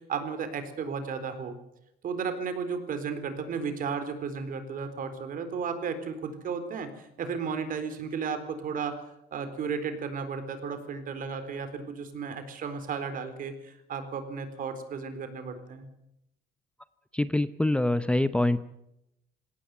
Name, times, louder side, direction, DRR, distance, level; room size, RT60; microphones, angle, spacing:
voice 1, 0.0-1.6 2.0-6.9 7.2-9.0 9.3-15.9, right 5 dB, 55° right, 10 dB, 4.0 m, -34 dB
voice 2, 17.1-18.6, left 1 dB, 5° left, 12 dB, 0.8 m, -25 dB
20.0 x 17.5 x 9.2 m, 0.84 s
cardioid pair, 110°, 17 cm